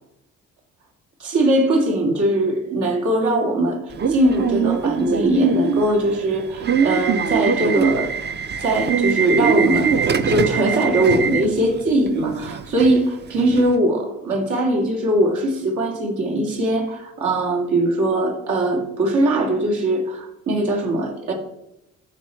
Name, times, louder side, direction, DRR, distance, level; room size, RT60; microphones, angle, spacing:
voice 1, 1.2-8.1 8.6-21.3, right 1 dB, 75° right, 0 dB, 2.4 m, -20 dB
Subway metro underground / Alarm, 3.9-13.7, right 6 dB, 35° right, 0.6 m, -23 dB
14.0 x 5.1 x 4.5 m, 0.87 s
cardioid pair, 90°, 30 cm